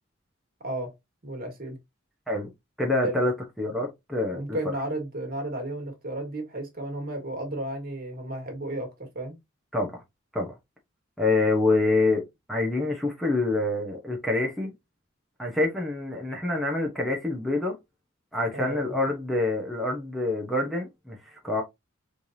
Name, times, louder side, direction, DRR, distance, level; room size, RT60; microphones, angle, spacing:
voice 1, 1.2-1.8 3.0-3.2 4.3-9.4 18.5-19.0, right 1 dB, 50° right, 1.7 m, -33 dB
voice 2, 2.8-3.3 3.6-4.4 9.7-9.9 10.3-10.5 11.2-12.2 12.5-14.7 15.4-17.7 18.3-21.6, left 2 dB, ahead, 0.9 m, -26 dB
4.3 x 3.3 x 2.7 m
head